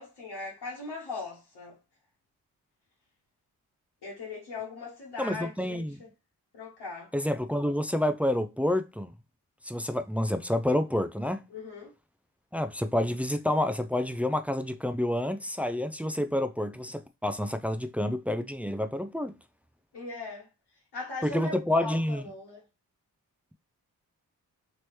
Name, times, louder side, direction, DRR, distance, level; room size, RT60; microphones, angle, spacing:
voice 1, 0.0-1.8 4.0-6.1 6.5-7.1 11.5-11.9 19.9-20.5 20.9-22.6, left 3 dB, 85° left, 1.2 m, -39 dB
voice 2, 5.2-6.0 7.1-9.1 9.6-11.4 12.5-19.4 21.2-22.3, left 1 dB, 5° right, 0.3 m, -28 dB
3.2 x 2.9 x 3.0 m
supercardioid pair, 40°, 39 cm